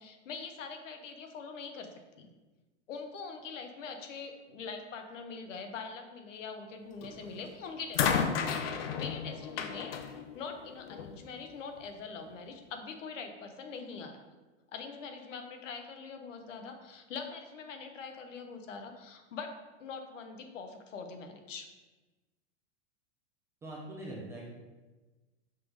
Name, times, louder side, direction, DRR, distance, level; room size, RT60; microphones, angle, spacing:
voice 1, 0.0-1.9 2.2-2.3 2.9-8.5 8.8-14.2 14.7-19.5 19.8-21.7, left 5 dB, 90° left, 5 dB, 1.0 m, -43 dB
sound 1, 7.0-7.4 7.9-11.2 12.2-12.3, left 7 dB, 55° left, 0.6 m, -33 dB
voice 2, 23.6-24.5, right 1 dB, 10° right, -4 dB, 0.4 m, -42 dB
5.9 x 3.2 x 5.1 m, 1.2 s
supercardioid pair, 155°, 36 cm